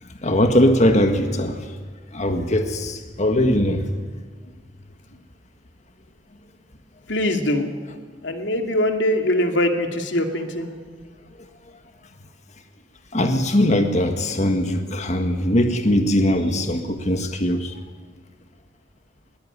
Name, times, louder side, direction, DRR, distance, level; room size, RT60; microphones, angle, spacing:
voice 1, 0.2-1.8 2.1-3.9 13.1-17.7, left 1 dB, 40° left, 6 dB, 1.6 m, -20 dB
voice 2, 7.1-7.7 8.2-10.7, left 1 dB, 85° left, 5 dB, 2.6 m, -22 dB
21.0 x 20.0 x 9.8 m, 1.5 s
head